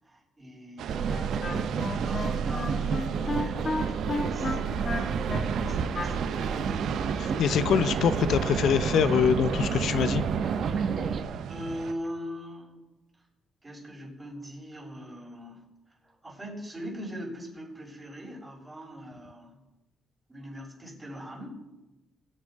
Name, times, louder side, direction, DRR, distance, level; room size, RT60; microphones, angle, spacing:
voice 1, 0.0-4.7 5.3-6.2 7.4-7.6 11.5-12.8 13.6-15.6 16.0-19.6 20.3-21.6, equal, 20° right, -4 dB, 6.6 m, -41 dB
sound 1, 0.8-11.9, right 9 dB, 75° right, 0.7 m, -36 dB
sound 2, 0.9-11.2, right 6 dB, 60° right, 1.2 m, -30 dB
Wind instrument woodwind instrument, 1.1-6.7, left 3 dB, 35° left, 2.2 m, -33 dB
voice 2, 7.2-10.2, left 8 dB, 70° left, 12 dB, 0.6 m, -24 dB
21.5 x 8.6 x 5.3 m, 1.0 s
cardioid pair, 90°, 0 cm